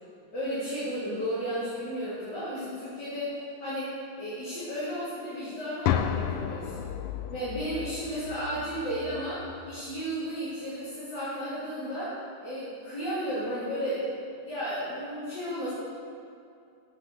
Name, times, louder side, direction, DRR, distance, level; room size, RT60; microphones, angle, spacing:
voice 1, 0.3-6.9 7.3-14.1 14.4-15.7, equal, 50° left, -12 dB, 3.5 m, -33 dB
sound 1, 5.8-9.8, left 9 dB, 90° left, 1.5 m, -33 dB
9.7 x 7.9 x 6.8 m, 2.4 s
omnidirectional pair, 2.4 m